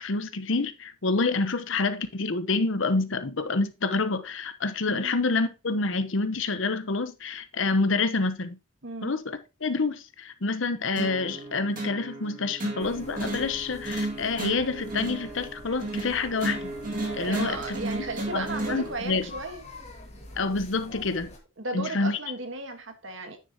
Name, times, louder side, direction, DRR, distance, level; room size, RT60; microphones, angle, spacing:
voice 1, 0.0-8.6 9.0-16.7 17.1-17.8 18.3-19.3 20.3-21.3 21.7-22.2, left 3 dB, 65° left, 0.9 m, -28 dB
voice 2, 8.8-9.1 17.2-19.6 21.6-23.4, right 3 dB, 65° right, 1.6 m, -35 dB
sound 1, 11.0-18.9, right 2 dB, 40° right, 2.3 m, -34 dB
sound 2, 12.8-21.4, left 1 dB, 35° left, 2.0 m, -46 dB
9.3 x 7.0 x 2.9 m
head